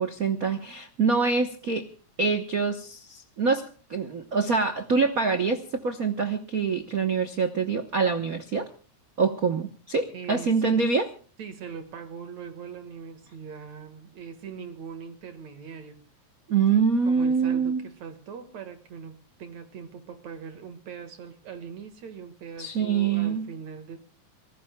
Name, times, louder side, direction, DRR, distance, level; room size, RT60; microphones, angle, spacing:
voice 1, 0.0-1.9 2.2-8.7 9.2-11.1 16.5-17.9 22.6-23.5, right 5 dB, 85° right, 8 dB, 0.7 m, -25 dB
voice 2, 10.1-10.9 11.4-16.0 17.1-24.0, right 6 dB, 65° right, 9 dB, 2.9 m, -41 dB
27.0 x 19.0 x 2.3 m, 0.40 s
omnidirectional pair, 3.4 m